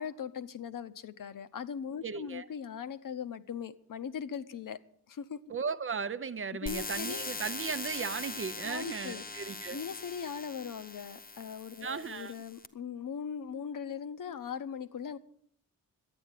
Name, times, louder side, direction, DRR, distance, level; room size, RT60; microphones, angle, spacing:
voice 1, 0.0-4.8 5.1-5.4 6.6-7.2 8.6-9.2 9.7-15.2, left 7 dB, 60° left, 0.8 m, -39 dB
voice 2, 2.0-2.5 5.5-9.8 11.8-12.3, right 5 dB, 35° right, 0.5 m, -36 dB
sound 1, 6.7-12.7, left 3 dB, 25° left, 0.8 m, -41 dB
11.5 x 9.2 x 9.1 m
wide cardioid pair, 160°, 36 cm